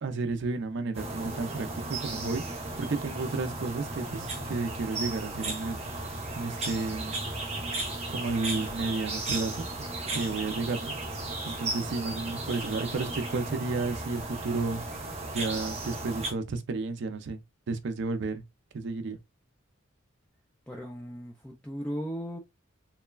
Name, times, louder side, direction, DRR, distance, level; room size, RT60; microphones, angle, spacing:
voice 1, 0.0-5.8 6.3-7.1 8.1-9.9 10.1-10.9 11.5-14.8 15.3-17.4 17.7-18.4 18.7-19.2, right 3 dB, 60° right, 0.4 m, -32 dB
sound 1, 0.9-16.3, right 2 dB, 30° right, 0.9 m, -35 dB
voice 2, 20.7-22.4, equal, 5° left, 0.4 m, -37 dB
3.0 x 2.2 x 2.2 m
head